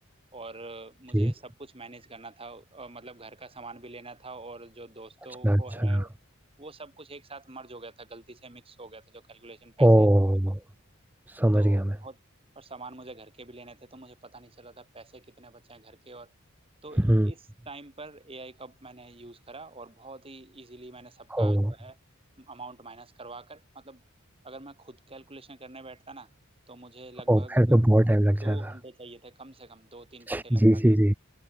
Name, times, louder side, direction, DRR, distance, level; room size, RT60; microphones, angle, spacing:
voice 1, 0.3-6.1 6.6-10.1 11.5-12.2 12.5-16.3 16.8-22.0 22.4-24.0 24.4-26.3 26.7-27.8 28.4-30.8, right 3 dB, 25° right, 3.0 m, -46 dB
voice 2, 5.4-6.0 9.8-10.6 11.3-11.9 17.0-17.3 21.3-21.7 27.3-28.6 30.3-31.1, right 1 dB, 10° right, 0.6 m, -21 dB
head